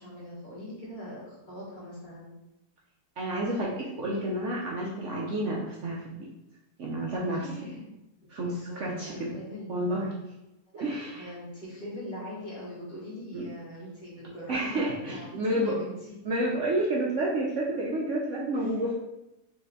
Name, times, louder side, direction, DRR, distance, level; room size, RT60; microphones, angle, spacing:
voice 1, 0.0-2.3 7.3-7.9 8.3-10.2 10.8-10.9 11.1-15.9 18.5-18.7, equal, 30° left, -8 dB, 1.6 m, -42 dB
voice 2, 3.2-6.3 6.8-7.7 8.3-9.3 9.7-10.0 10.7-11.3 13.3-13.5 14.5-15.8 16.2-18.9, right 1 dB, 60° right, -4 dB, 0.9 m, -30 dB
4.1 x 3.3 x 3.8 m, 0.93 s
omnidirectional pair, 1.7 m